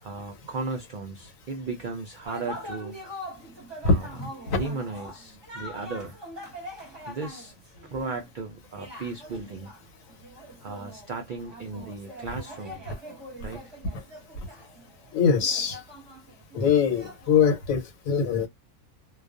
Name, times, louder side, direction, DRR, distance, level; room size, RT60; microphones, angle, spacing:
voice 1, 0.0-3.0 3.8-4.1 4.5-6.2 7.1-7.5 7.8-9.7 10.6-12.8 13.4-13.7, right 3 dB, 90° right, 0.4 m, -36 dB
sound 1, 2.3-8.3 8.8-17.7, equal, 25° right, 0.8 m, -43 dB
voice 2, 3.8-4.6 13.9-14.0 15.1-15.8 16.5-18.5, left 6 dB, 75° left, 1.2 m, -23 dB
2.3 x 2.2 x 2.4 m
omnidirectional pair, 1.4 m